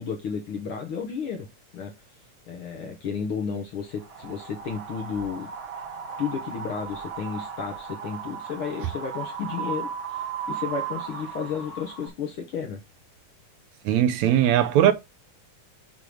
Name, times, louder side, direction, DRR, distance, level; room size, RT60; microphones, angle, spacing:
voice 1, 0.0-1.5 1.7-1.9 2.5-5.5 6.2-12.8, left 6 dB, 60° left, 1.5 m, -32 dB
Wind, 4.0-12.1, right 6 dB, 50° right, 2.0 m, -36 dB
voice 2, 13.9-14.9, right 11 dB, 75° right, 1.9 m, -19 dB
6.8 x 3.7 x 6.1 m
omnidirectional pair, 3.5 m